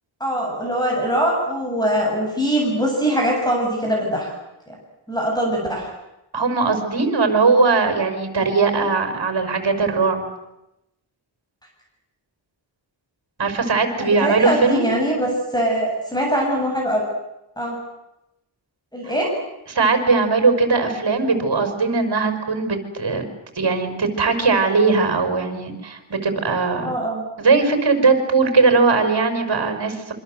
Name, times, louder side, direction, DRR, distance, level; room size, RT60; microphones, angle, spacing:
voice 1, 0.2-4.3 4.7-4.8 5.1-5.9 14.0-17.0 17.6-17.8 18.9-19.3 26.8-27.2, equal, 10° left, -1 dB, 7.5 m, -22 dB
voice 2, 6.3-10.3 13.4-14.9 19.7-23.2 23.6-27.0 27.4-30.1, right 4 dB, 55° right, 7 dB, 5.7 m, -19 dB
27.0 x 25.5 x 8.0 m, 0.91 s
wide cardioid pair, 95°, 48 cm